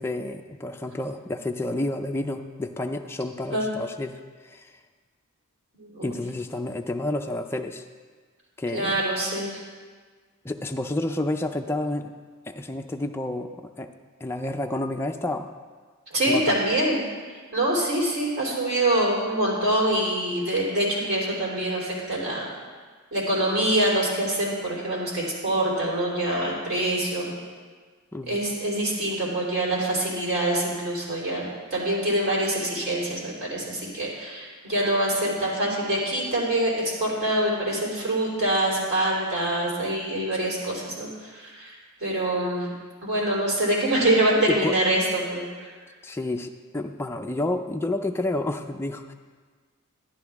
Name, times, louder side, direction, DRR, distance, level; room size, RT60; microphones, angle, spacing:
voice 1, 0.0-4.2 4.4-4.7 6.0-7.8 8.6-9.0 10.4-12.1 12.5-13.9 14.2-15.5 16.3-16.6 28.1-28.4 44.5-44.7 46.0-49.1, left 2 dB, 10° left, 4 dB, 0.4 m, -30 dB
voice 2, 5.7-6.1 8.7-9.5 16.1-17.0 17.5-22.5 23.1-27.3 28.3-41.7 42.0-42.7 43.0-45.4, right 1 dB, 50° right, -5 dB, 3.3 m, -25 dB
11.5 x 10.5 x 3.5 m, 1.5 s
head